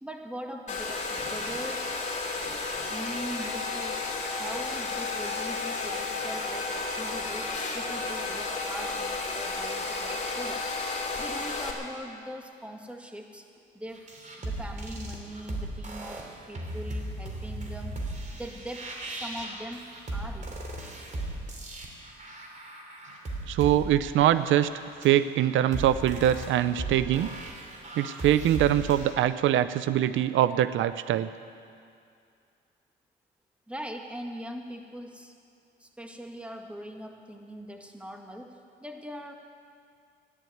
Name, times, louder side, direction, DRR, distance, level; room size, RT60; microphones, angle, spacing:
voice 1, 0.0-2.5 2.9-4.0 4.3-13.4 13.7-14.1 14.4-16.2 16.5-18.0 18.3-19.8 20.1-20.6 33.7-35.3 35.8-39.3, equal, 5° right, 3 dB, 1.8 m, -41 dB
Domestic sounds home sounds, 0.7-11.7, left 3 dB, 35° left, 2.9 m, -32 dB
sound 1, 13.9-29.1, right 1 dB, 40° right, 3.0 m, -37 dB
voice 2, 23.5-24.7 25.0-27.3 28.0-31.3, right 12 dB, 75° right, 13 dB, 0.5 m, -23 dB
14.5 x 10.5 x 9.3 m, 2.3 s
cardioid pair, 90°, 20 cm